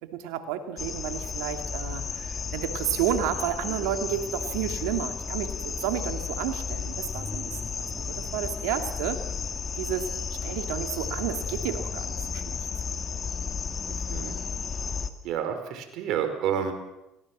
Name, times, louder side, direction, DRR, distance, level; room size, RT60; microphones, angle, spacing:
voice 1, 0.0-9.2 9.8-10.1 10.4-12.6, right 10 dB, 80° right, 6 dB, 2.5 m, -31 dB
sound 1, 0.8-15.1, left 6 dB, 35° left, 2.0 m, -33 dB
voice 2, 13.9-14.4 15.2-16.7, right 8 dB, 65° right, 7 dB, 4.7 m, -29 dB
23.5 x 18.5 x 7.5 m, 0.92 s
supercardioid pair, 85°, 0 cm